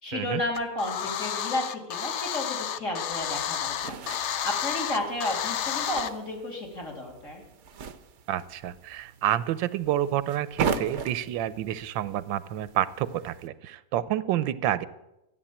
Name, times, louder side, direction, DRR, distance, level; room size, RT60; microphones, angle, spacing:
voice 1, 0.0-7.4, left 1 dB, 40° left, 0 dB, 3.4 m, -32 dB
sound 1, 0.6-6.1, left 9 dB, 80° left, 0.6 m, -31 dB
sound 2, 3.1-13.5, right 6 dB, 55° right, 0.8 m, -38 dB
voice 2, 8.3-14.9, right 12 dB, 85° right, 16 dB, 1.4 m, -29 dB
13.5 x 8.9 x 8.6 m, 0.93 s
omnidirectional pair, 2.0 m